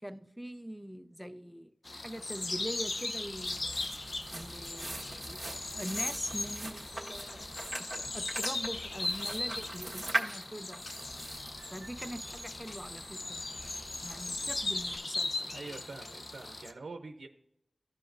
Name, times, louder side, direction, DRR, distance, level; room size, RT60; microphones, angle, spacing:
voice 1, 0.0-3.9 4.3-5.4 5.7-10.8 11.7-13.4 14.0-15.5, equal, ahead, 11 dB, 0.5 m, -43 dB
sound 1, 1.8-16.7, left 2 dB, 50° left, 0.6 m, -38 dB
sound 2, 3.2-15.0, right 1 dB, 20° right, 1.4 m, -42 dB
voice 2, 15.5-17.3, right 3 dB, 85° right, 4 dB, 0.6 m, -45 dB
14.0 x 4.9 x 2.6 m, 0.80 s
wide cardioid pair, 85°, 0 cm